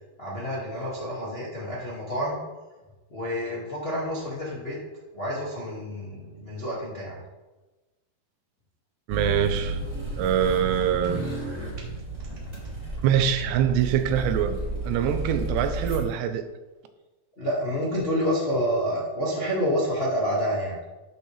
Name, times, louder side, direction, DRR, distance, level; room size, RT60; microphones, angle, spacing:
voice 1, 0.2-2.4 3.1-4.8 5.1-7.2 17.4-20.8, equal, 70° left, -6 dB, 0.5 m, -28 dB
sound 1, 9.1-16.0, right 2 dB, 15° right, 1.5 m, -32 dB
voice 2, 9.1-9.8 10.2-11.2 13.0-14.6 14.8-16.5, right 9 dB, 90° right, 9 dB, 2.9 m, -24 dB
12.0 x 6.5 x 3.3 m, 1.1 s
omnidirectional pair, 4.8 m